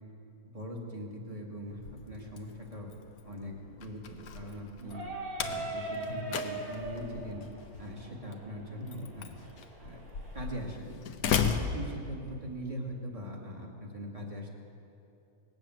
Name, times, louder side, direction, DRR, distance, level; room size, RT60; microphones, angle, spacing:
voice 1, 0.4-1.8 2.1-2.9 3.2-5.1 5.4-7.5 7.8-9.4 9.8-10.0 10.3-11.0 11.6-14.5, equal, 20° right, 0 dB, 1.8 m, -41 dB
Slam, 1.7-12.6, left 6 dB, 75° left, 1.2 m, -37 dB
sound 1, 4.8-10.5, right 2 dB, 70° right, 2.2 m, -41 dB
18.5 x 8.7 x 7.6 m, 2.8 s
omnidirectional pair, 1.6 m